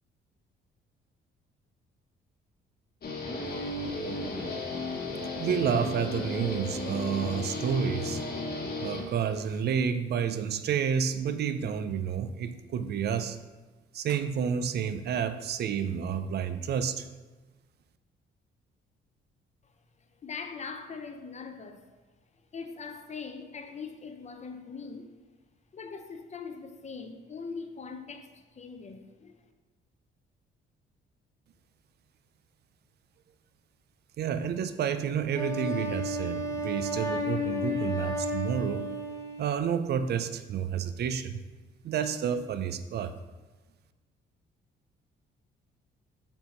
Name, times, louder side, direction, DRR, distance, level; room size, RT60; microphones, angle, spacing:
Guitar, 3.0-9.6, left 2 dB, 50° left, 1.2 m, -34 dB
voice 1, 5.3-8.2 8.8-13.4 13.9-17.1 34.2-38.9 39.4-41.4 41.8-43.1, right 7 dB, 55° right, 0.4 m, -30 dB
voice 2, 20.2-21.8 22.5-25.1 25.7-29.3, left 5 dB, 35° left, 0.6 m, -41 dB
Wind instrument woodwind instrument, 35.3-39.7, left 1 dB, 15° left, 0.9 m, -32 dB
6.9 x 2.7 x 5.1 m
cardioid pair, 90°, 20 cm